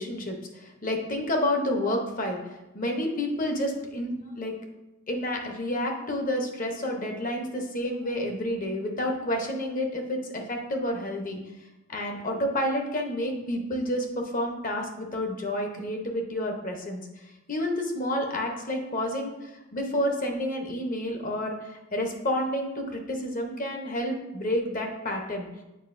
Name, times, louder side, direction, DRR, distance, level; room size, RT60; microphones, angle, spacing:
voice 1, 0.0-4.5 5.1-11.4 11.9-17.1 17.5-25.5, left 1 dB, 40° left, 3 dB, 0.9 m, -30 dB
7.8 x 4.9 x 2.6 m, 0.96 s
head